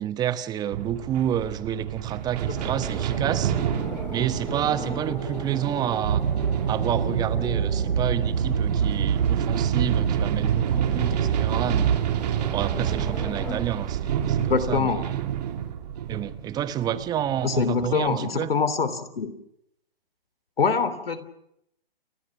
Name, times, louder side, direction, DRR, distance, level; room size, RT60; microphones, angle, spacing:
voice 1, 0.0-3.5 4.1-6.3 6.7-12.0 12.5-14.9 16.1-18.5, right 11 dB, 15° right, 14 dB, 1.0 m, -29 dB
sound 1, 0.7-18.2, right 10 dB, 45° right, 2.9 m, -30 dB
sound 2, 2.5-13.6, left 2 dB, 5° left, 4.2 m, -39 dB
sound 3, 6.0-12.0, right 7 dB, 65° right, 1.2 m, -25 dB
voice 2, 14.4-15.0 17.4-19.3 20.6-21.3, left 5 dB, 75° left, 13 dB, 3.1 m, -24 dB
30.0 x 24.5 x 6.0 m, 0.78 s
figure-of-eight pair, 135°, 30 cm